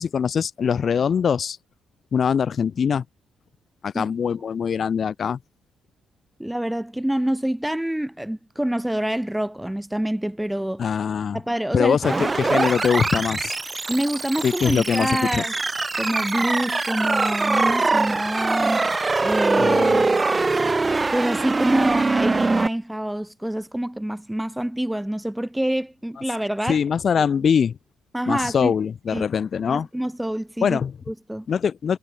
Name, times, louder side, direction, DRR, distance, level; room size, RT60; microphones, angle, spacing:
voice 1, 0.0-1.6 2.1-3.1 3.8-5.4 10.8-11.4 11.7-13.5 14.4-15.4 19.6-20.1 26.7-27.8 28.3-29.9 30.6-31.0 31.5-32.0, left 7 dB, 50° left, 1.8 m, -22 dB
voice 2, 6.4-10.8 11.3-12.2 13.9-15.5 16.0-18.9 19.2-19.9 21.1-26.8 27.2-27.3 28.1-28.7 29.1-29.3 29.7-30.8 31.1-31.5, right 1 dB, 5° right, 0.5 m, -26 dB
sound 1, 12.0-22.7, right 3 dB, 25° right, 1.5 m, -23 dB
cardioid pair, 90°, 0 cm